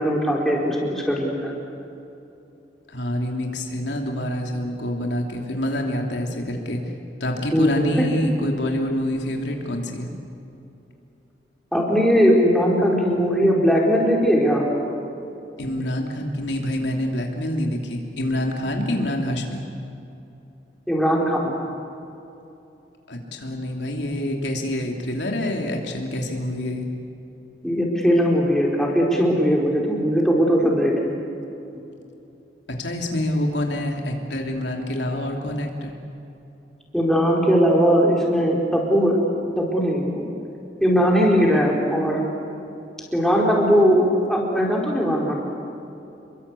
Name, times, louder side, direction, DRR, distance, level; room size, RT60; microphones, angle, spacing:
voice 1, 0.0-1.5 7.5-8.0 11.7-14.7 20.9-21.5 27.6-31.1 36.9-39.2 39.6-40.3 40.8-42.3 43.1-45.4, equal, ahead, -2 dB, 4.5 m, -19 dB
voice 2, 2.9-6.8 7.2-10.1 15.6-19.6 23.1-26.9 32.7-35.9, left 1 dB, 75° left, 1 dB, 3.0 m, -26 dB
28.5 x 23.0 x 8.4 m, 2.9 s
head